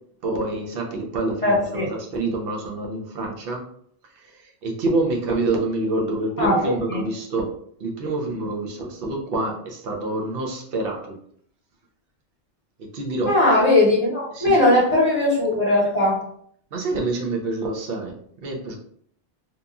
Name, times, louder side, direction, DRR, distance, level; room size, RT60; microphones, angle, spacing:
voice 1, 0.2-3.7 4.1-7.5 7.8-11.2 12.8-13.4 14.3-14.6 16.7-18.8, right 2 dB, 60° right, 0 dB, 0.8 m, -27 dB
voice 2, 1.4-1.9 6.4-7.0 13.3-16.2, left 1 dB, 35° left, -7 dB, 0.8 m, -19 dB
2.9 x 2.5 x 2.3 m, 0.63 s
omnidirectional pair, 1.2 m